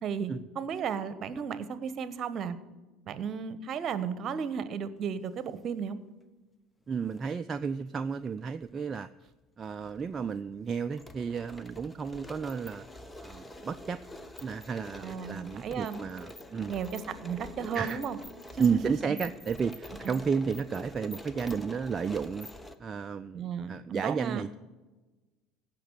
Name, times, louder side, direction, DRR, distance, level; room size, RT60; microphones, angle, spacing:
voice 1, 0.0-2.6 3.1-6.0 15.0-16.0 16.7-18.2 18.5-18.9 20.0-20.2 23.3-24.4, right 7 dB, 45° right, 14 dB, 1.1 m, -34 dB
sound 1, 6.9-7.2 8.2-9.0 9.3-9.4 9.8-22.7, left 1 dB, 15° left, 1.2 m, -46 dB
voice 2, 6.9-9.3 9.6-12.9 13.2-14.0 14.4-16.7 17.7-18.0 18.6-24.6, right 6 dB, 30° right, 9 dB, 0.5 m, -32 dB
16.5 x 6.1 x 8.0 m, 1.2 s
hypercardioid pair, 70°, 0 cm